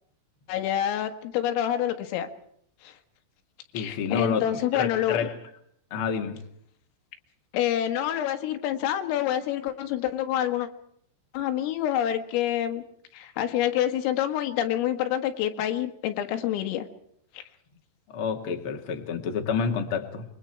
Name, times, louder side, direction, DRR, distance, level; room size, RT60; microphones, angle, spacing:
voice 1, 0.5-2.3 2.8-2.9 3.8-5.2 7.5-10.7 11.3-12.8 13.1-16.9 17.4-17.5, left 11 dB, 85° left, 7 dB, 4.3 m, -27 dB
voice 2, 3.7-5.3 5.9-6.4 18.1-20.2, left 6 dB, 45° left, 3 dB, 1.8 m, -29 dB
27.0 x 22.5 x 4.7 m, 0.67 s
omnidirectional pair, 5.8 m